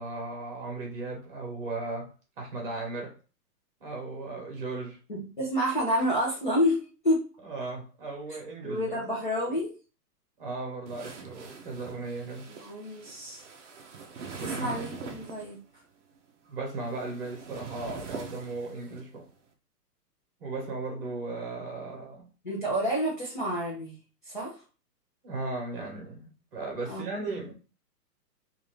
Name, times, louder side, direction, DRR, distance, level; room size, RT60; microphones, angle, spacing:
voice 1, 0.0-2.1 2.4-3.2 3.8-5.0 7.4-9.0 10.4-12.5 14.4-14.8 16.5-19.3 20.4-22.3 25.2-27.5, right 3 dB, 35° right, 1.1 m, -36 dB
voice 2, 5.1-6.8 7.0-7.3 8.6-9.7 12.5-13.4 14.4-15.6 22.4-24.0 24.3-24.5 26.9-27.1, equal, 30° left, 0.5 m, -29 dB
sound 1, 10.9-15.5 16.5-19.0, right 5 dB, 50° right, 0.5 m, -43 dB
2.6 x 2.5 x 3.1 m
hypercardioid pair, 175°, 49 cm